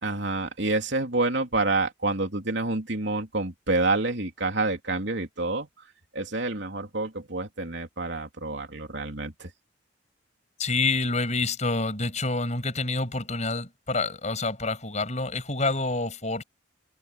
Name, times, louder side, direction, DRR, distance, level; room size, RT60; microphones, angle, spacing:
voice 1, 0.0-5.7 6.1-9.5, right 2 dB, 65° right, 3.4 m, -28 dB
voice 2, 10.6-16.4, left 3 dB, 35° left, 7.2 m, -27 dB
head